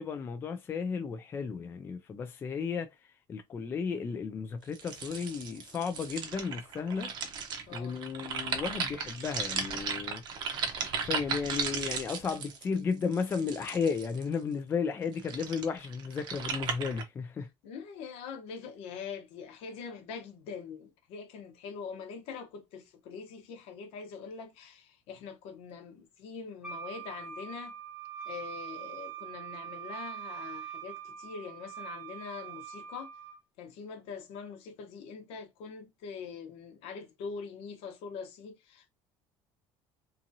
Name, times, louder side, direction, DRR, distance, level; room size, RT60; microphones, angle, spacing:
voice 1, 0.0-2.9 3.3-7.1 7.7-10.2 10.9-17.5, left 5 dB, 20° left, 0.3 m, -34 dB
sound 1, 4.7-14.3 15.0-17.0, right 6 dB, 45° right, 0.7 m, -36 dB
voice 2, 7.7-8.0 17.6-27.7 28.2-33.1 33.6-38.9, left 6 dB, 70° left, 0.8 m, -43 dB
Wind instrument woodwind instrument, 26.6-33.4, right 8 dB, 10° right, 0.9 m, -43 dB
2.7 x 2.5 x 2.7 m
cardioid pair, 155°, 10 cm